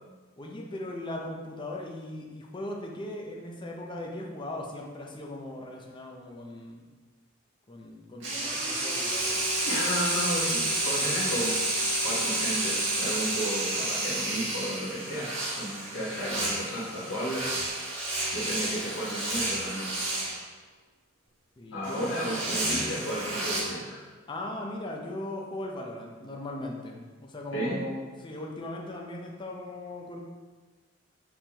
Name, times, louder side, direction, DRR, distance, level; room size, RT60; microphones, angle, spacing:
voice 1, 0.4-6.9 7.7-9.5 21.6-22.1 24.3-30.2, left 1 dB, 25° left, 0 dB, 0.5 m, -38 dB
sound 1, 8.2-20.4 21.8-23.6, right 2 dB, 65° right, 1.4 m, -30 dB
voice 2, 9.6-11.6 12.0-17.5 18.3-19.9 21.7-24.0 27.5-27.8, equal, 75° left, -8 dB, 1.2 m, -33 dB
5.4 x 3.3 x 2.9 m, 1.4 s
head